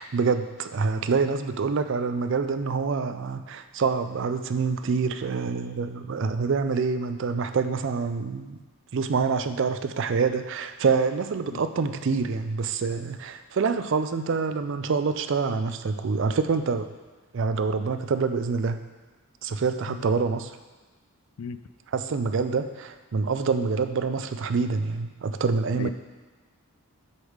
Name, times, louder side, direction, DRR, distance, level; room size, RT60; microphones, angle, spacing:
voice 1, 0.0-8.6 8.9-16.9 17.3-18.8 19.4-20.6 21.9-25.9, right 4 dB, 55° right, 10 dB, 0.4 m, -26 dB
voice 2, 11.5-11.6 19.9-20.0 21.4-21.6 25.8-25.9, left 5 dB, 70° left, 12 dB, 0.4 m, -35 dB
8.0 x 3.6 x 6.3 m, 1.3 s
head